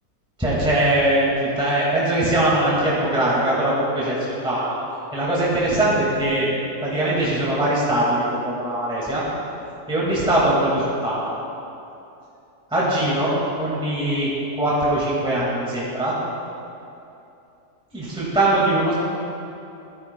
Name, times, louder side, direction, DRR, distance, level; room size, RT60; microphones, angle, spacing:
voice 1, 0.4-4.8 5.1-6.5 6.8-9.3 9.9-11.3 12.7-16.2 17.9-18.9, right 1 dB, 5° right, -7 dB, 1.9 m, -21 dB
15.5 x 13.0 x 2.3 m, 2.8 s
omnidirectional pair, 1.6 m